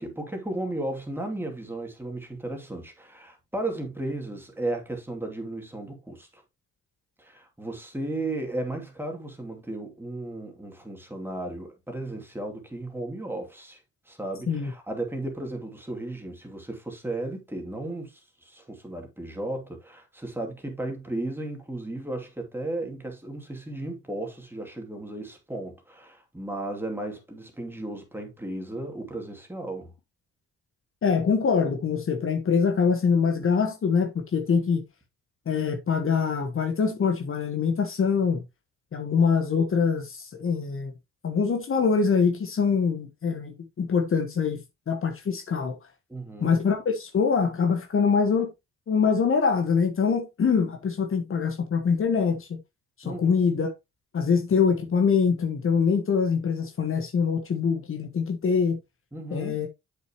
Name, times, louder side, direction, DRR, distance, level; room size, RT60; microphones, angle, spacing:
voice 1, 0.0-6.4 7.2-13.8 14.1-29.9 46.1-46.5 53.0-53.3 59.1-59.6, right 2 dB, 5° right, 2.6 m, -35 dB
voice 2, 31.0-34.8 35.5-38.4 38.9-40.9 41.2-44.6 44.9-45.7 46.4-48.5 48.9-52.5 53.0-53.7 54.1-58.8 59.3-59.7, left 5 dB, 45° left, 1.4 m, -24 dB
7.8 x 6.7 x 2.9 m
cardioid pair, 90°, 30 cm